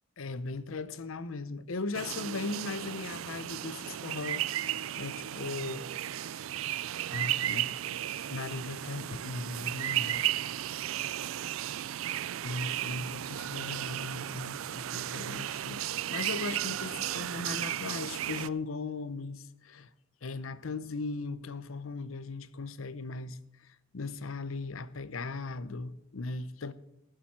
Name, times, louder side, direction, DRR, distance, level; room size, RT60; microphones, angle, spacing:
voice 1, 0.2-5.9 6.1-6.4 7.1-7.9 8.3-10.3 12.4-15.8 16.1-19.9 20.2-26.7, left 3 dB, 85° left, 0.7 m, -38 dB
sound 1, 1.9-18.5, right 12 dB, 80° right, 0.4 m, -34 dB
14.5 x 7.5 x 7.3 m
head